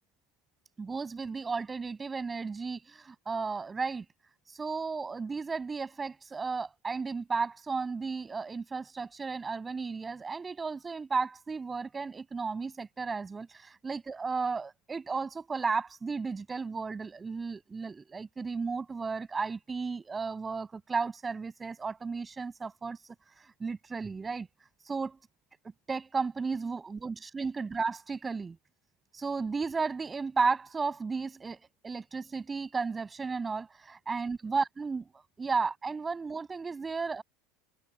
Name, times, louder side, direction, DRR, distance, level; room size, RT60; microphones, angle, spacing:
voice 1, 0.8-4.1 4.5-23.0 23.4-24.5 24.8-25.2 25.9-28.6 29.1-35.1 35.4-37.2, right 4 dB, 20° right, 8.0 m, -34 dB
supercardioid pair, 115°, 0 cm